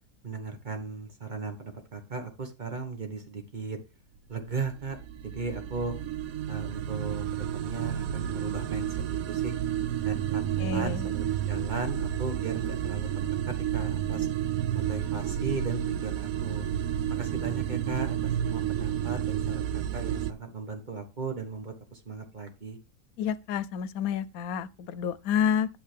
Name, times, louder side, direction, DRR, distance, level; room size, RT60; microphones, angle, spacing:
voice 1, 0.2-3.8 4.3-6.0 6.5-9.5 10.0-14.3 14.7-16.6 17.1-22.8, right 4 dB, 35° right, 1.3 m, -37 dB
sound 1, 4.3-20.3, right 10 dB, 80° right, 1.0 m, -31 dB
voice 2, 10.6-11.1 23.2-25.7, left 8 dB, 90° left, 1.1 m, -29 dB
8.5 x 6.6 x 3.3 m
omnidirectional pair, 1.5 m